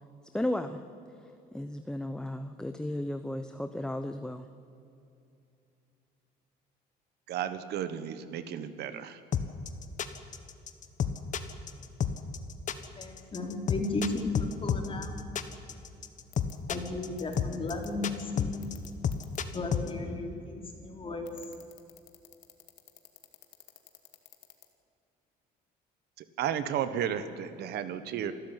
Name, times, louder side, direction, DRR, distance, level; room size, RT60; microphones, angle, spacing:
voice 1, 0.3-0.8 1.5-4.5, left 1 dB, 5° left, 8 dB, 0.9 m, -34 dB
voice 2, 7.3-9.2 26.4-28.3, right 9 dB, 75° right, 12 dB, 1.4 m, -33 dB
sound 1, 9.3-19.9, left 7 dB, 50° left, 1.5 m, -31 dB
voice 3, 13.0-15.1 16.7-18.7 19.5-21.3, left 2 dB, 30° left, 2 dB, 3.9 m, -35 dB
sound 2, 16.3-16.5 17.2-17.4 17.7-17.9 18.6-19.4 21.3-24.7, left 15 dB, 85° left, 2.3 m, -52 dB
27.0 x 13.0 x 9.2 m, 2.6 s
cardioid pair, 110°, 17 cm